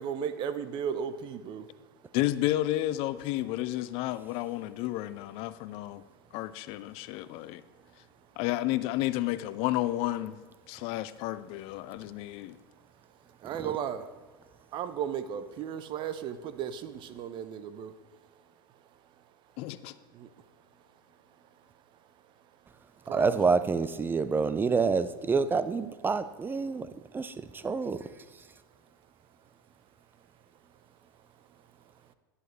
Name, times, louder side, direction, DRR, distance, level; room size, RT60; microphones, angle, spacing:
voice 1, 0.0-1.9 6.0-6.1 7.2-8.4 11.8-12.2 12.7-18.5 18.7-19.6 20.1-23.6 26.6-26.8 27.1-27.2 27.6-27.7 28.9-29.0 29.4-29.5 30.2-30.3 30.5-31.8 32.1-32.2, right 8 dB, 40° right, 0.8 m, -39 dB
voice 2, 2.1-6.0 6.3-7.6 8.4-10.4 10.7-12.6 19.6-19.9, left 15 dB, 50° left, 0.5 m, -31 dB
voice 3, 23.1-26.9 27.1-27.3 27.6-28.0, right 4 dB, 15° right, 0.5 m, -27 dB
11.0 x 10.5 x 3.2 m
hypercardioid pair, 95°, 12 cm